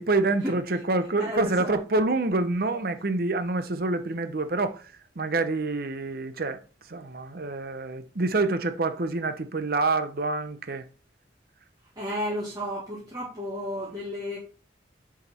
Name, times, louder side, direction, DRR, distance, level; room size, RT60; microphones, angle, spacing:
voice 1, 0.0-4.8 5.2-6.6 6.9-10.8, right 3 dB, 55° right, 0.8 m, -27 dB
voice 2, 1.2-1.8 12.0-14.4, left 1 dB, 20° right, 1.9 m, -32 dB
6.7 x 5.1 x 4.3 m
head